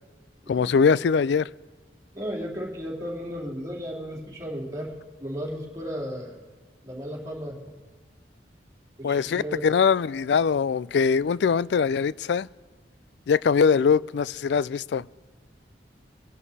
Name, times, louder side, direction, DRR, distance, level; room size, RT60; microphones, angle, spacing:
voice 1, 0.5-1.5 9.0-12.5 13.3-15.0, left 6 dB, 70° left, 0.3 m, -22 dB
voice 2, 2.1-4.9 5.2-6.3 6.8-7.6 9.0-9.7, equal, 20° right, 3.0 m, -34 dB
24.0 x 11.0 x 4.2 m
head